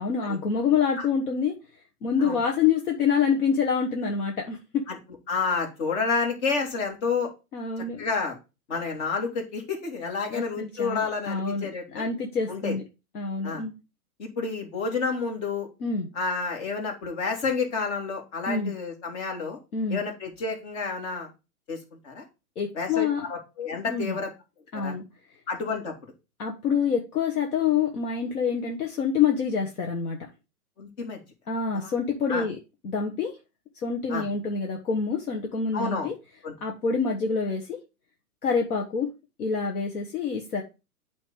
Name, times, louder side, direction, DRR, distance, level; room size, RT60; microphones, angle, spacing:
voice 1, 0.0-1.5 2.0-4.6 7.5-8.0 10.3-12.8 13.1-13.7 15.8-16.1 18.5-18.7 19.7-20.0 22.6-23.3 23.9-24.2 24.7-25.0 26.4-30.2 31.5-32.6 32.8-33.4 33.8-36.1 36.6-37.8 38.4-39.1 39.4-40.6, left 6 dB, 70° left, 1 dB, 1.5 m, -26 dB
voice 2, 5.3-7.3 8.0-8.4 8.7-12.1 12.5-12.8 13.4-13.6 14.2-15.7 16.2-19.6 19.9-21.3 21.7-21.8 22.0-22.2 22.7-24.3 24.7-24.9 25.5-25.9 30.8-31.2 31.7-31.9 32.3-32.5 34.1-34.2 35.7-36.1 36.4-36.5, left 4 dB, 50° left, 2 dB, 2.6 m, -29 dB
8.8 x 3.2 x 5.1 m, 0.28 s
hypercardioid pair, 125°, 47 cm